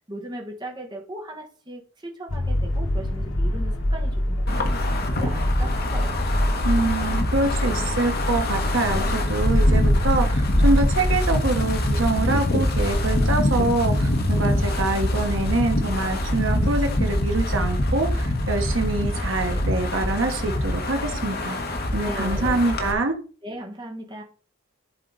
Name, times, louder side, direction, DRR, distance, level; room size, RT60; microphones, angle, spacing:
voice 1, 0.1-6.2 22.0-22.6 23.4-24.2, right 1 dB, 20° right, 1.6 m, -38 dB
sound 1, 2.3-18.2, left 1 dB, 85° left, 1.2 m, -26 dB
Wind, 4.5-22.9, left 1 dB, 50° left, 1.4 m, -25 dB
voice 2, 6.6-21.6 21.9-23.2, right 3 dB, 75° right, 1.3 m, -25 dB
11.5 x 4.5 x 4.1 m
head